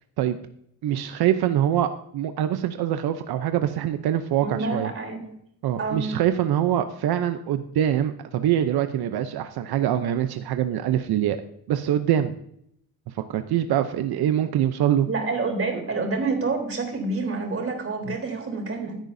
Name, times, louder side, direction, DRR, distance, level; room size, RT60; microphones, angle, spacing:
voice 1, 0.8-4.9 5.6-11.4 11.7-12.3 13.2-15.1, right 11 dB, 85° right, 8 dB, 0.8 m, -24 dB
voice 2, 4.4-5.2 5.8-6.1 15.1-18.9, right 3 dB, 35° right, 2 dB, 3.6 m, -28 dB
15.5 x 9.0 x 2.7 m, 0.70 s
cardioid pair, 110°, 37 cm